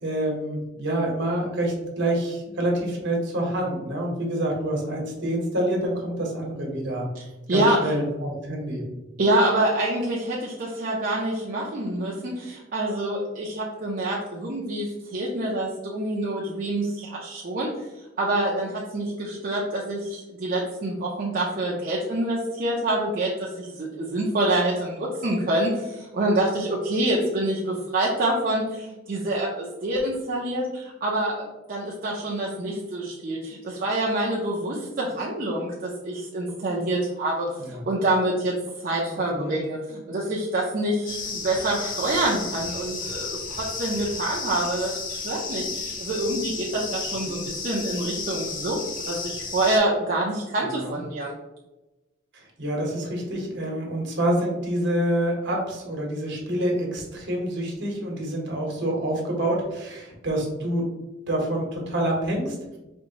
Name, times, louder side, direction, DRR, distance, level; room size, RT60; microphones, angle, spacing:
voice 1, 0.0-7.1 7.5-8.8 37.5-37.8 39.1-39.5 47.2-47.4 50.6-51.0 52.3-60.8 61.3-62.5, right 1 dB, 60° right, -1 dB, 1.2 m, -27 dB
voice 2, 7.1-7.9 9.2-17.8 18.2-38.6 38.8-51.3, right 1 dB, 45° right, -4 dB, 0.6 m, -26 dB
sound 1, 41.1-49.8, left 4 dB, 45° left, 0.6 m, -33 dB
4.4 x 2.6 x 2.9 m, 1.0 s
head